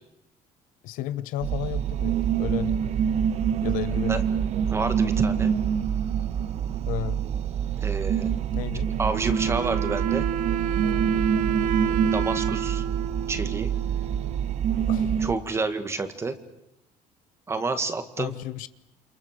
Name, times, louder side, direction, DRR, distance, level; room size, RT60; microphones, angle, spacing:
voice 1, 0.8-2.8 3.6-4.2 6.9-7.2 8.5-8.9 14.9-15.2 18.2-18.7, left 14 dB, 70° left, 1.0 m, -33 dB
sound 1, 1.4-15.4, right 8 dB, 50° right, 1.2 m, -26 dB
voice 2, 4.7-5.5 7.8-8.3 9.0-10.2 12.1-12.8 13.3-13.7 15.2-16.4 17.5-18.3, right 3 dB, 20° right, 1.9 m, -29 dB
Wind instrument woodwind instrument, 9.2-14.7, right 7 dB, 70° right, 0.9 m, -30 dB
28.5 x 27.5 x 6.7 m
cardioid pair, 165°, 14 cm